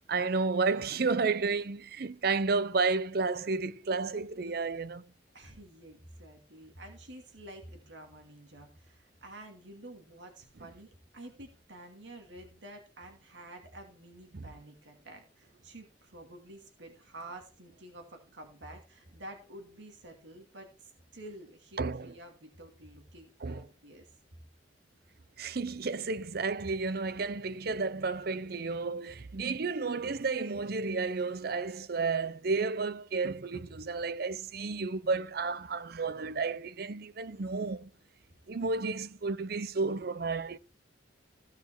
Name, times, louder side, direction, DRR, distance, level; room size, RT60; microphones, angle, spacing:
voice 1, 0.1-5.0 14.3-14.4 21.8-22.1 23.4-23.6 25.4-37.9 38.5-40.6, right 4 dB, 55° right, 0.6 m, -32 dB
voice 2, 5.3-24.1, right 1 dB, 80° right, 2.5 m, -50 dB
15.5 x 5.8 x 4.5 m
head